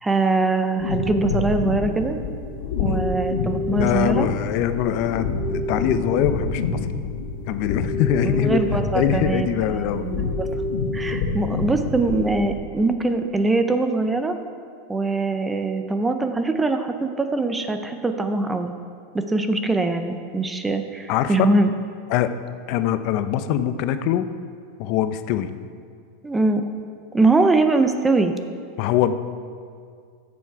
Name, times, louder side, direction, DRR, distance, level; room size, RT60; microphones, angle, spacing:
voice 1, 0.0-2.2 2.8-4.3 8.2-10.5 10.9-14.4 14.9-18.7 19.1-21.7 26.2-26.6 27.1-28.3, right 3 dB, 10° right, 7 dB, 0.6 m, -22 dB
sound 1, 0.8-12.5, left 3 dB, 80° left, 1.6 m, -27 dB
voice 2, 3.8-6.8 7.5-8.6 8.9-10.1 21.1-21.4 22.1-22.3 22.7-24.3 24.8-25.5 28.8-29.1, left 10 dB, 45° left, 11 dB, 0.6 m, -23 dB
14.0 x 7.2 x 4.7 m, 2.2 s
supercardioid pair, 155°, 0 cm